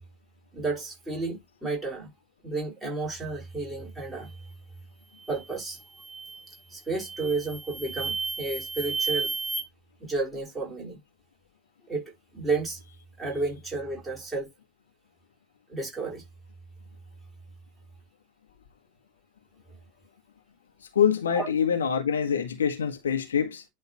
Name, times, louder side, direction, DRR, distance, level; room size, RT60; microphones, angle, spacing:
voice 1, 0.5-2.1 2.4-4.3 5.3-5.8 6.5-9.3 10.0-11.0 11.9-12.8 13.2-14.5 15.7-16.2 21.4-21.5, right 3 dB, 10° right, 4.8 m, -32 dB
sound 1, 5.2-5.5 6.0-6.5 7.0-9.6, right 4 dB, 10° left, 1.9 m, -33 dB
voice 2, 20.9-23.6, left 7 dB, 65° left, 1.6 m, -25 dB
11.0 x 3.8 x 3.0 m
figure-of-eight pair, 90°, 0 cm